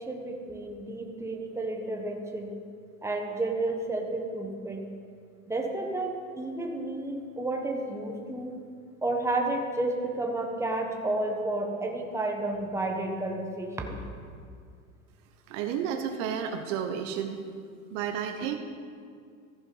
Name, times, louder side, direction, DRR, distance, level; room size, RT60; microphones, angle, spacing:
voice 1, 0.0-2.5 3.0-4.8 5.5-8.5 9.0-14.0, right 2 dB, 5° right, 1 dB, 1.3 m, -31 dB
voice 2, 15.5-17.4 17.9-18.6, right 8 dB, 55° right, 6 dB, 1.0 m, -31 dB
15.0 x 5.3 x 5.5 m, 2.2 s
hypercardioid pair, 105°, 43 cm